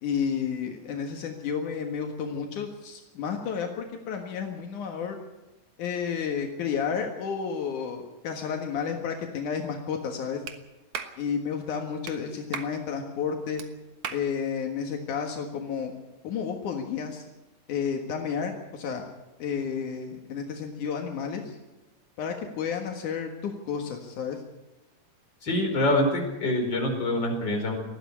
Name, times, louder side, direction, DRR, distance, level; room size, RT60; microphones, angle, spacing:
voice 1, 0.0-5.2 5.8-10.4 11.2-13.6 14.1-15.9 16.2-17.2 17.7-19.1 19.4-21.6 22.2-24.4, left 6 dB, 80° left, 3 dB, 3.1 m, -31 dB
Clapping, 10.5-10.6 10.9-11.2 12.1-12.2 12.5-12.7 13.6-13.7 14.0-14.3, right 8 dB, 70° right, 2.7 m, -35 dB
voice 2, 25.4-27.8, left 1 dB, 35° left, 2 dB, 5.3 m, -25 dB
19.5 x 14.0 x 9.7 m, 1.0 s
omnidirectional pair, 3.5 m